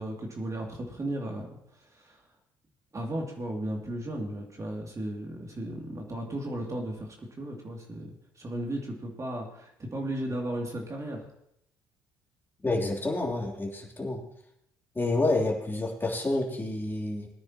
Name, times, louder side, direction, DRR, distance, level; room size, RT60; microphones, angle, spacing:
voice 1, 0.0-1.5 1.7-2.2 2.9-11.3, right 1 dB, 30° right, 0 dB, 2.5 m, -35 dB
voice 2, 12.6-14.2 14.9-17.3, left 2 dB, 20° left, -1 dB, 3.2 m, -29 dB
21.0 x 9.8 x 2.9 m, 0.75 s
hypercardioid pair, 55°, 11 cm